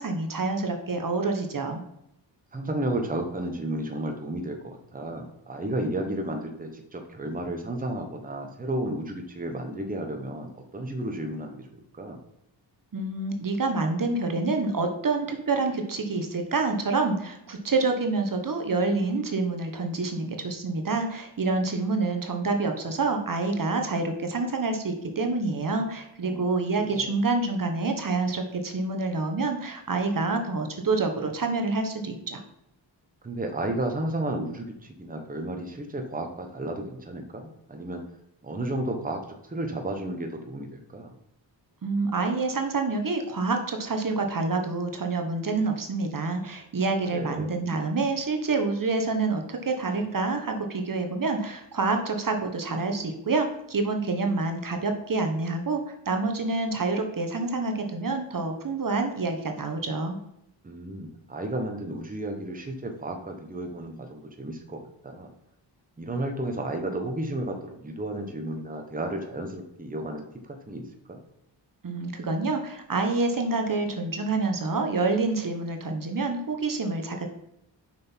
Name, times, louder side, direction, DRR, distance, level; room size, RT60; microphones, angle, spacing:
voice 1, 0.0-1.8 12.9-32.4 41.8-60.2 71.8-77.3, right 3 dB, 45° right, 5 dB, 1.2 m, -27 dB
voice 2, 2.5-12.2 26.2-26.4 26.8-27.1 33.2-38.0 38.4-41.1 46.8-47.6 60.6-65.3 66.0-70.8 71.1-71.2, right 1 dB, 20° right, 4 dB, 1.1 m, -33 dB
7.4 x 5.9 x 4.5 m, 0.82 s
wide cardioid pair, 90°, 45 cm